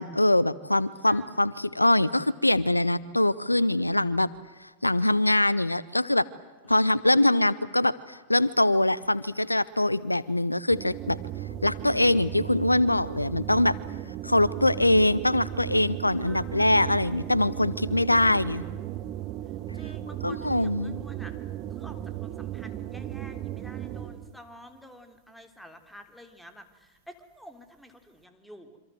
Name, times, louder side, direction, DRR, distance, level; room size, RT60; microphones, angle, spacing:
voice 1, 0.0-4.3 4.6-6.3 6.7-11.2 11.6-13.8 14.2-18.6 20.2-21.0, left 1 dB, 90° left, 20 dB, 0.8 m, -23 dB
voice 2, 1.0-1.5 6.6-7.0 16.2-17.2 19.7-21.3 21.7-28.8, equal, ahead, 7 dB, 3.8 m, -50 dB
sound 1, 10.7-24.4, right 12 dB, 40° right, 1.7 m, -36 dB
27.5 x 26.0 x 7.9 m, 1.3 s
figure-of-eight pair, 90°, 0 cm